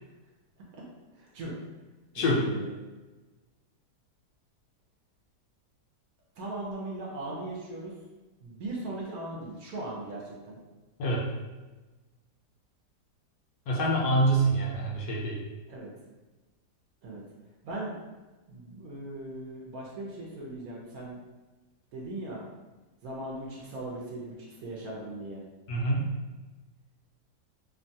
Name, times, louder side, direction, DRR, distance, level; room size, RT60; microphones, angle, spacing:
voice 1, 1.2-1.5 2.1-2.7 6.4-7.9 8.4-10.6 15.7-15.9 17.0-17.2 17.6-18.0 18.5-21.2 21.9-22.4 23.0-25.4, right 2 dB, 70° right, -4 dB, 1.0 m, -38 dB
voice 2, 13.7-15.4 25.7-26.0, right 1 dB, 70° left, -3 dB, 1.0 m, -26 dB
2.9 x 2.2 x 2.6 m, 1.2 s
omnidirectional pair, 1.8 m